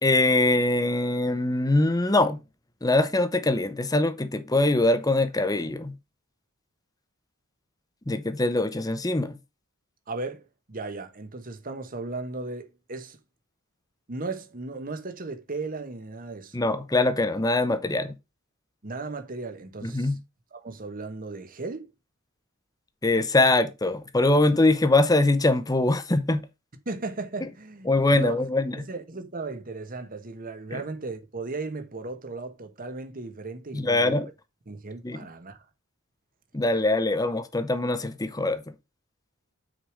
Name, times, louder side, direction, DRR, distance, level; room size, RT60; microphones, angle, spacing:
voice 1, 0.0-2.4 2.8-5.9 8.1-9.4 16.5-18.1 19.8-20.2 23.0-26.4 27.9-28.8 30.7-30.8 33.7-34.3 35.0-35.3 36.5-38.6, left 2 dB, 15° left, 0.8 m, -23 dB
voice 2, 10.1-10.4 10.7-13.2 14.1-16.6 18.8-20.1 20.5-21.9 26.8-28.3 28.8-34.2 34.7-35.6, right 3 dB, 40° right, 1.1 m, -36 dB
6.4 x 4.8 x 4.7 m
head